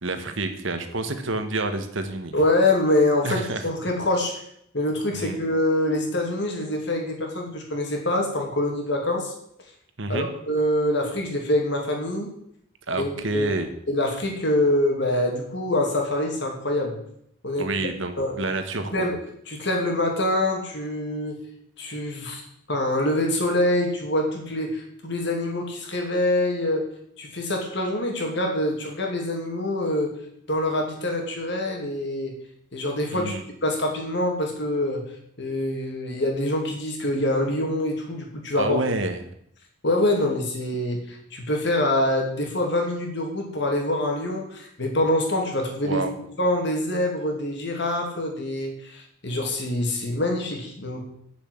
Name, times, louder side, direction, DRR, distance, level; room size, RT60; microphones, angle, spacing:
voice 1, 0.0-2.3 3.2-3.7 5.1-5.4 10.0-10.3 12.9-13.7 17.6-19.1 33.1-33.4 38.5-39.2 45.8-46.1, right 2 dB, 65° right, 8 dB, 1.3 m, -28 dB
voice 2, 2.3-4.3 4.7-9.3 10.1-12.3 13.0-13.5 13.9-17.0 17.4-17.7 18.2-18.3 18.9-19.2 19.5-21.4 21.8-22.4 22.7-26.8 27.2-30.1 30.5-32.3 32.7-33.3 33.6-35.0 35.4-38.8 39.8-46.0 46.4-51.0, left 1 dB, 55° left, 2 dB, 2.6 m, -25 dB
8.1 x 7.2 x 7.8 m, 0.71 s
head